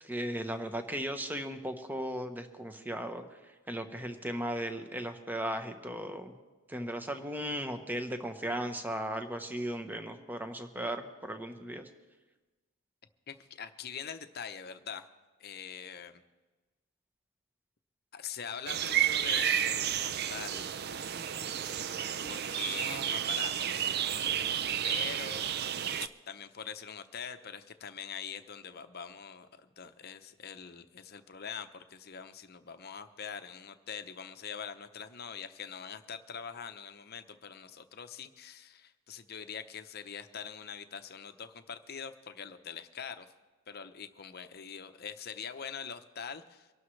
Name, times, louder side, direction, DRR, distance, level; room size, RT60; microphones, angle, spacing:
voice 1, 0.0-6.3 6.7-11.9, right 1 dB, 10° right, 7 dB, 0.9 m, -36 dB
voice 2, 13.3-15.1 15.4-16.2 18.1-20.7 22.3-23.7 24.8-25.5 26.0-43.3 43.7-46.7, left 7 dB, 45° left, 9 dB, 0.8 m, -43 dB
sound 1, 18.7-26.1, right 9 dB, 45° right, 0.4 m, -31 dB
24.5 x 12.0 x 3.3 m, 1.2 s
head